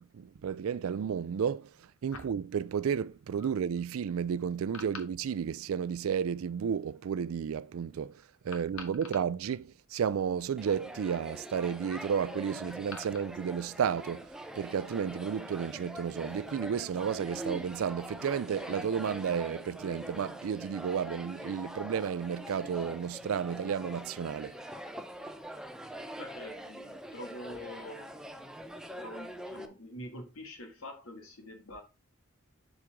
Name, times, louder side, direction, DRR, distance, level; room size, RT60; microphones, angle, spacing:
voice 1, 0.0-1.7 2.0-8.1 8.4-14.3 14.6-24.5, right 7 dB, 85° right, 0.4 m, -32 dB
voice 2, 8.5-8.9 26.2-28.1 28.9-31.8, left 1 dB, 85° left, 2.1 m, -45 dB
sound 1, 10.6-29.7, right 1 dB, 5° right, 0.7 m, -43 dB
7.6 x 5.1 x 3.5 m
head